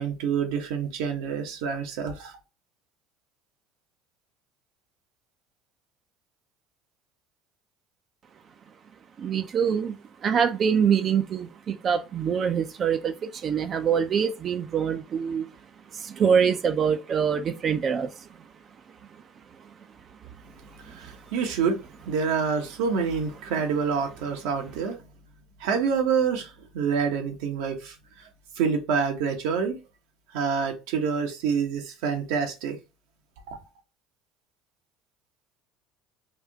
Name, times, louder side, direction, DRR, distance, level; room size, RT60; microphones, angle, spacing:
voice 1, 0.0-2.3 20.8-21.8 22.1-25.0 25.6-28.3 28.6-29.8 30.3-32.8 33.5-33.6, right 6 dB, 80° right, 1.2 m, -27 dB
voice 2, 9.2-15.5 15.9-18.1, right 7 dB, 40° right, 0.5 m, -25 dB
3.5 x 2.6 x 3.5 m
supercardioid pair, 100°, 0 cm